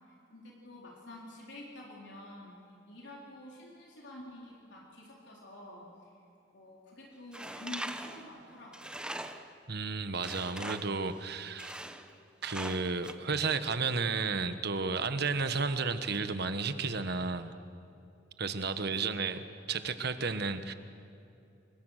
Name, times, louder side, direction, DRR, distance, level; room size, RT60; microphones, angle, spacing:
voice 1, 0.1-6.1 6.5-8.9 18.8-19.3, left 1 dB, 65° left, -2 dB, 4.0 m, -49 dB
Tools, 7.3-9.6 10.2-11.0 11.6-12.1 12.4-13.1, right 1 dB, 5° right, 0.9 m, -41 dB
voice 2, 9.7-11.8 12.4-17.5 18.4-20.7, right 4 dB, 55° right, 10 dB, 1.3 m, -32 dB
29.0 x 23.5 x 6.5 m, 2.7 s
head